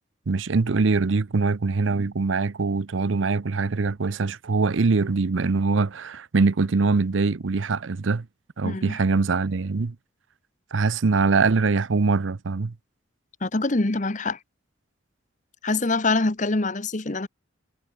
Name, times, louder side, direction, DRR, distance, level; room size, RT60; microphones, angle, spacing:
voice 1, 0.3-8.3 8.6-10.0 10.7-12.7, right 4 dB, 80° right, 0.7 m, -23 dB
voice 2, 8.6-9.0 13.4-14.4 15.6-17.3, left 2 dB, 40° left, 1.1 m, -24 dB
head